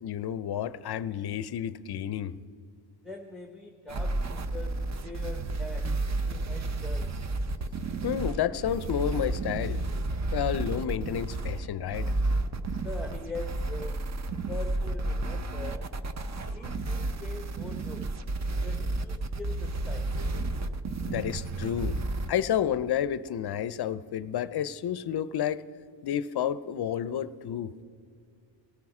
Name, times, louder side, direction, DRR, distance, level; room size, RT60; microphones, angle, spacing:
voice 1, 0.0-2.3 8.0-9.8 10.3-12.1 21.1-22.0 22.3-25.6 26.0-27.7, left 9 dB, 55° left, 16 dB, 0.5 m, -30 dB
voice 2, 3.0-7.1 12.6-14.0 14.5-15.9 16.5-18.0 18.6-20.1 21.0-21.1, left 2 dB, ahead, 4 dB, 0.8 m, -42 dB
sound 1, 3.9-22.3, right 2 dB, 35° right, 0.6 m, -31 dB
18.0 x 14.0 x 4.8 m, 2.3 s
wide cardioid pair, 130°, 47 cm